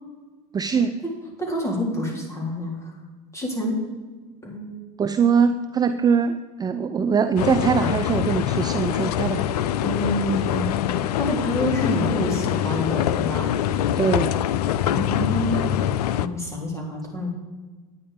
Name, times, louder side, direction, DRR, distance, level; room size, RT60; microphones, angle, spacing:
voice 1, 0.5-0.9 5.0-9.4 14.0-14.3, right 6 dB, 20° right, 10 dB, 0.5 m, -22 dB
voice 2, 1.4-2.9 3.3-3.8 4.4-4.8 9.5-13.5 14.9-15.8 16.1-17.3, left 1 dB, 15° left, -1 dB, 3.7 m, -28 dB
sound 1, 7.4-16.3, left 11 dB, 85° left, 0.5 m, -24 dB
9.7 x 9.5 x 5.1 m, 1.3 s
hypercardioid pair, 100°, 19 cm